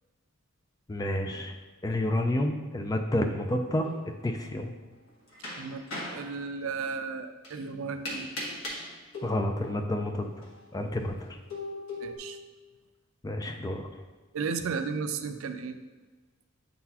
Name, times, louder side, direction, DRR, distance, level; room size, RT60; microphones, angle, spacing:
voice 1, 0.9-1.5 1.8-3.9 4.2-4.7 9.2-10.5 10.7-11.4 13.2-13.9, left 1 dB, 15° left, 4 dB, 0.3 m, -29 dB
sound 1, 3.8-4.1 5.1-6.3 7.4-7.5 8.1-10.0 10.4-10.5 11.5-12.2, left 1 dB, 75° left, 1.3 m, -38 dB
voice 2, 5.6-8.3 12.0-12.4 14.3-15.8, right 5 dB, 70° right, 8 dB, 0.4 m, -34 dB
8.4 x 3.9 x 2.9 m, 1.3 s
head